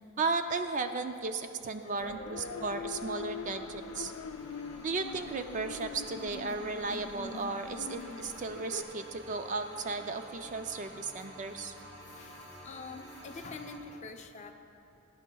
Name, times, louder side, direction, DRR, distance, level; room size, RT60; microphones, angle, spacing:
voice 1, 0.2-4.1 4.8-11.7, right 3 dB, 35° right, 7 dB, 0.4 m, -35 dB
voice 2, 1.8-2.8 8.0-8.3 11.2-11.3 12.1-14.5, left 3 dB, 30° left, 5 dB, 0.5 m, -46 dB
sound 1, 2.0-8.8, left 5 dB, 85° left, 0.5 m, -43 dB
sound 2, 2.5-13.8, right 1 dB, 55° right, 2.0 m, -51 dB
17.0 x 10.5 x 2.3 m, 2.8 s
head